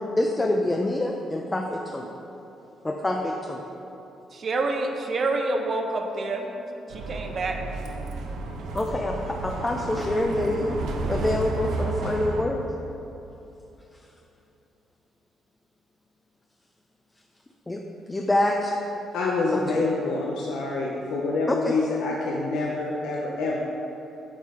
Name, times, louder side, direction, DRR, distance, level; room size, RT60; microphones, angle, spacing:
voice 1, 0.2-2.2 2.8-3.7 8.7-10.8 11.1-12.7 17.7-17.8 18.1-18.7 19.5-19.6 21.5-21.8, left 1 dB, 20° left, 1 dB, 0.5 m, -26 dB
voice 2, 4.3-6.5 6.9-7.6, right 2 dB, 45° right, 3 dB, 0.8 m, -27 dB
Bus, 6.9-12.4, right 3 dB, 85° right, 0.7 m, -32 dB
voice 3, 19.1-23.6, left 3 dB, 85° left, -2 dB, 0.7 m, -26 dB
8.7 x 5.6 x 3.7 m, 3.0 s
cardioid pair, 90°, 0 cm